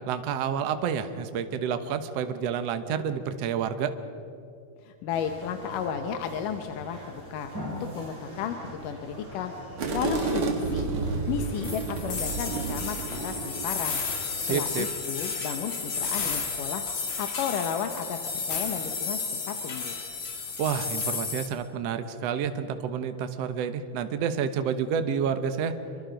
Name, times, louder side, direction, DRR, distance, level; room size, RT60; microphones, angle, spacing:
voice 1, 0.1-3.9 14.4-14.9 20.6-25.7, right 7 dB, 70° right, 9 dB, 1.5 m, -29 dB
voice 2, 4.8-9.5 9.9-10.9 11.3-14.0 14.5-16.8 17.2-18.2 18.5-19.2 19.5-20.0, left 7 dB, 70° left, 6 dB, 2.3 m, -33 dB
sound 1, 5.1-14.9, equal, 5° right, 5.9 m, -43 dB
sound 2, 9.8-13.8, right 4 dB, 45° right, 2.1 m, -30 dB
sound 3, 11.6-21.5, left 5 dB, 40° left, 2.6 m, -32 dB
26.5 x 23.5 x 5.2 m, 2.6 s
omnidirectional pair, 4.4 m